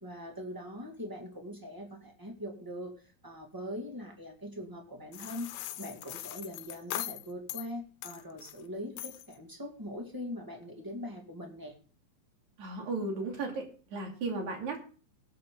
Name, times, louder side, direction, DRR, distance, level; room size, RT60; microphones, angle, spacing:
voice 1, 0.0-5.5 5.8-11.7, left 1 dB, 10° right, 2 dB, 1.1 m, -42 dB
sound 1, 5.1-7.7 8.0-8.6 9.0-9.4, left 14 dB, 90° left, 2.7 m, -40 dB
voice 2, 12.6-14.8, right 3 dB, 50° right, 1 dB, 4.0 m, -35 dB
19.0 x 8.6 x 3.8 m, 0.39 s
omnidirectional pair, 4.4 m